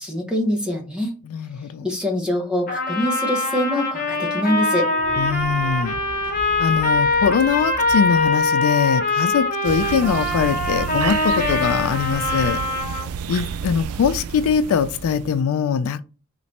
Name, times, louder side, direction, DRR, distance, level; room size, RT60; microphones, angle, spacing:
voice 1, 0.0-1.2 1.8-4.9, left 1 dB, 5° right, 0.8 m, -24 dB
voice 2, 1.3-1.9 5.2-6.0 6.6-12.6 13.3-16.0, left 7 dB, 75° left, 0.3 m, -22 dB
Trumpet, 2.7-13.1, left 2 dB, 40° left, 0.9 m, -23 dB
sound 1, 4.9-11.2, left 1 dB, 50° right, 1.5 m, -41 dB
sound 2, 9.6-15.4, right 7 dB, 80° right, 0.3 m, -30 dB
3.1 x 3.0 x 4.1 m
head